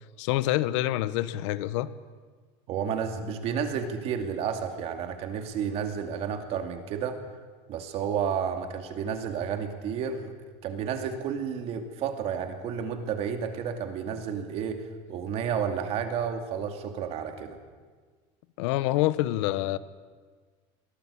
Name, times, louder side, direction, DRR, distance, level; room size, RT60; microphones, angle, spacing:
voice 1, 0.2-1.9 18.6-19.8, left 15 dB, 85° left, 16 dB, 1.0 m, -26 dB
voice 2, 2.7-7.2 7.7-10.3 10.6-17.6, right 7 dB, 45° right, 6 dB, 2.6 m, -31 dB
23.0 x 18.0 x 8.6 m, 1.5 s
cardioid pair, 170°, 15 cm